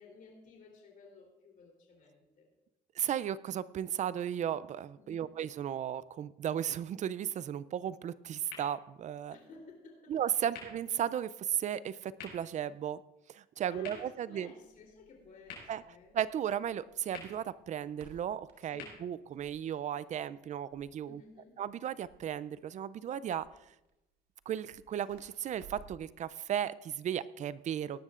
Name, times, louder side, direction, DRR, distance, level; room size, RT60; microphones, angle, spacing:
voice 1, 0.0-2.5 4.9-5.3 9.3-10.2 10.4-10.6 13.7-16.1 18.7-19.0 21.1-21.5, left 4 dB, 55° left, -1 dB, 3.4 m, -55 dB
voice 2, 3.0-9.4 10.1-13.0 13.3-14.5 15.7-15.8 16.1-21.2 21.6-23.5 24.5-28.0, right 9 dB, 45° right, 18 dB, 0.4 m, -35 dB
sound 1, 8.4-20.4, left 5 dB, 90° left, 5.4 m, -54 dB
Crackle, 14.6-26.1, right 6 dB, 85° right, 2.2 m, -61 dB
18.0 x 12.0 x 2.5 m, 0.93 s
cardioid pair, 110°, 17 cm